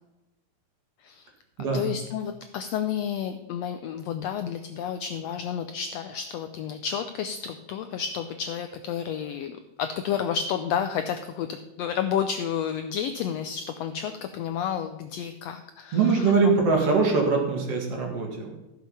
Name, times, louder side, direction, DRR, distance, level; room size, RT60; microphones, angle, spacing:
voice 1, 1.7-16.3, left 8 dB, 80° left, 8 dB, 1.5 m, -31 dB
voice 2, 15.9-18.5, right 4 dB, 55° right, 1 dB, 2.9 m, -22 dB
14.0 x 7.2 x 5.6 m, 0.99 s
omnidirectional pair, 3.6 m